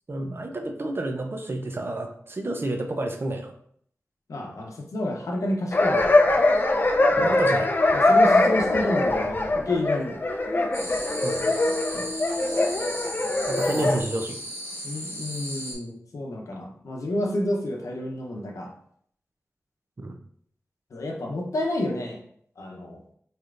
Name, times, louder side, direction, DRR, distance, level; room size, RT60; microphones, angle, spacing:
voice 1, 0.1-3.5 7.2-7.7 11.2-11.5 13.5-14.4 20.0-20.1, right 2 dB, 45° right, 4 dB, 0.6 m, -29 dB
voice 2, 4.3-6.3 7.1-7.4 7.9-10.2 11.9-12.1 13.7-13.9 14.8-18.7 20.9-22.2 22.6-23.0, left 1 dB, 85° left, 1 dB, 0.7 m, -30 dB
sound 1, 5.7-14.0, left 2 dB, 40° left, 0.4 m, -22 dB
sound 2, 10.7-15.7, equal, 70° right, 1.5 m, -35 dB
4.2 x 3.3 x 2.5 m, 0.64 s
cardioid pair, 55°, 5 cm